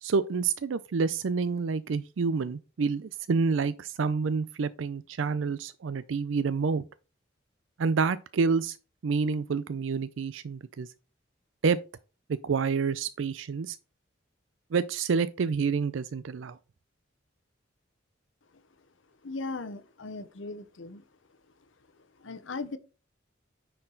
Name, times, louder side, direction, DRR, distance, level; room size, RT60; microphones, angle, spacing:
voice 1, 0.0-6.8 7.8-8.8 9.0-10.9 11.6-11.8 12.3-13.8 14.7-16.6, right 5 dB, 80° right, 0.4 m, -28 dB
voice 2, 19.2-21.0 22.2-22.8, left 3 dB, 80° left, 0.8 m, -38 dB
9.6 x 4.5 x 3.8 m
head